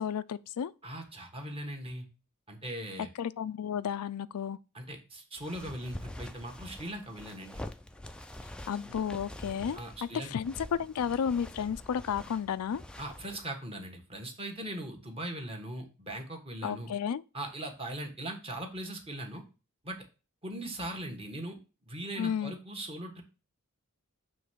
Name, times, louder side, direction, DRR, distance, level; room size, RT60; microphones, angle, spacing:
voice 1, 0.0-0.7 3.2-4.6 8.7-10.5 10.8-12.8 16.6-17.2 22.2-22.5, left 7 dB, 90° left, 0.4 m, -32 dB
voice 2, 0.8-2.0 2.5-3.1 4.7-7.6 9.7-10.3 13.0-16.9 17.3-19.4 19.8-20.0 20.4-21.6 21.9-23.2, right 1 dB, 25° right, 1.4 m, -40 dB
sound 1, 5.4-13.4, left 1 dB, 5° left, 0.4 m, -45 dB
7.1 x 3.3 x 6.2 m
head